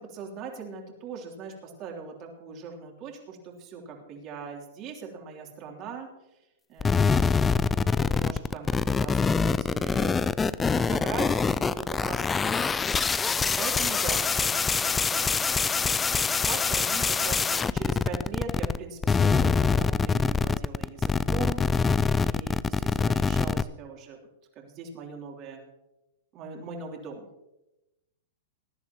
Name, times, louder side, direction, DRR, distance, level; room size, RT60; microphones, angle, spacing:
voice 1, 0.1-6.1 6.7-7.4 7.7-10.2 10.6-12.8 13.3-24.2 24.5-25.6 26.3-27.3, right 5 dB, 35° right, 1 dB, 3.1 m, -40 dB
sound 1, 6.8-18.8 19.0-23.6, left 5 dB, 15° left, 0.3 m, -24 dB
20.0 x 11.0 x 3.0 m, 0.95 s
hypercardioid pair, 140°, 0 cm